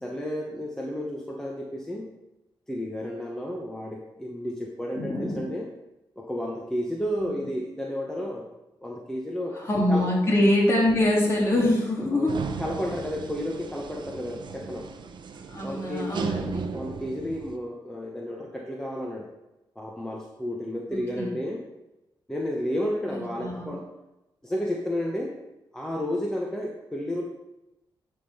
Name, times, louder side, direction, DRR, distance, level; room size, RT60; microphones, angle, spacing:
voice 1, 0.0-2.1 2.7-5.7 6.2-8.5 8.8-9.6 9.9-10.1 12.1-14.9 15.6-16.2 16.7-19.3 19.8-21.6 22.3-23.9 24.4-25.3 25.7-27.2, equal, 5° left, -1 dB, 1.0 m, -32 dB
voice 2, 5.0-5.5 7.1-7.3 9.5-12.3 15.5-16.8 20.9-21.3 23.0-23.7, left 1 dB, 30° left, -3 dB, 2.8 m, -24 dB
sound 1, 12.3-17.6, right 5 dB, 60° right, 0.7 m, -36 dB
10.0 x 3.8 x 5.5 m, 0.97 s
cardioid pair, 90°, 9 cm